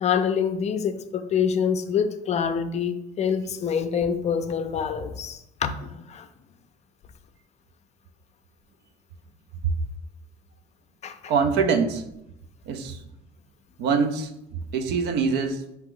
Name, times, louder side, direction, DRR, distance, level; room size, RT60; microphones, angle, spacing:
voice 1, 0.0-5.7 6.1-6.3 11.0-11.3, left 7 dB, 40° left, 0.4 m, -26 dB
voice 2, 11.3-12.0 12.7-13.0 13.8-14.3 14.7-15.6, right 5 dB, 80° right, 0.6 m, -23 dB
4.7 x 2.9 x 3.7 m
cardioid pair, 110°, 17 cm